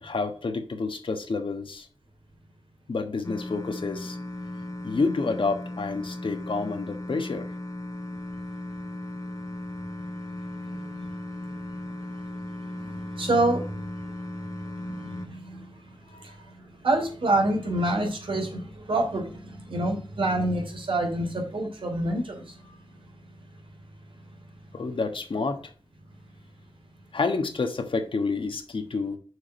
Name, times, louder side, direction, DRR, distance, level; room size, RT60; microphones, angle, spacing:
voice 1, 0.0-1.9 2.9-4.2 4.8-7.5 16.1-16.4 24.7-25.6 27.1-29.2, left 4 dB, 75° left, 1.4 m, -29 dB
sound 1, 3.2-15.3, left 1 dB, 40° left, 1.1 m, -37 dB
voice 2, 10.6-11.2 11.4-12.0 12.5-14.1 14.6-23.0, right 2 dB, 80° right, 3.0 m, -28 dB
6.5 x 4.9 x 6.2 m
wide cardioid pair, 65°, 9 cm